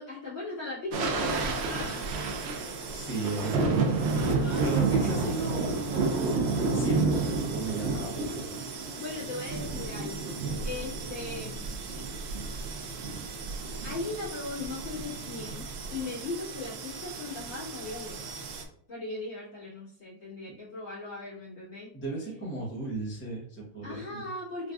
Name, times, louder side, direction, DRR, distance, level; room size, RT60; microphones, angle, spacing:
voice 1, 0.0-2.1 4.1-5.1 9.0-11.8 13.8-18.3 18.9-21.9 23.8-24.7, left 3 dB, 45° left, -9 dB, 1.7 m, -38 dB
sound 1, 0.9-18.6, right 3 dB, 80° right, 0.5 m, -31 dB
voice 2, 2.9-3.7 4.6-8.4 21.9-24.2, right 2 dB, 10° left, -5 dB, 0.6 m, -35 dB
4.0 x 2.5 x 2.3 m, 0.63 s
omnidirectional pair, 1.7 m